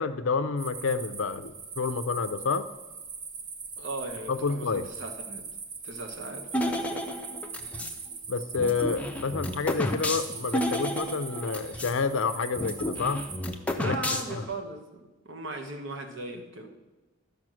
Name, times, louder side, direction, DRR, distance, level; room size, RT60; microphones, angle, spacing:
voice 1, 0.0-2.7 4.3-4.9 8.3-13.3 13.8-14.0 14.3-14.5, left 4 dB, 70° left, 11 dB, 0.5 m, -29 dB
sound 1, 0.6-13.4, right 5 dB, 40° right, 0.9 m, -42 dB
voice 2, 3.8-5.4 5.8-7.1 13.8-16.7, right 2 dB, 60° right, 3 dB, 1.2 m, -38 dB
sound 2, 6.5-8.0 8.6-12.0 12.2-12.3 12.6-14.5, left 1 dB, 5° left, 0.6 m, -31 dB
12.0 x 5.2 x 6.3 m, 1.1 s
head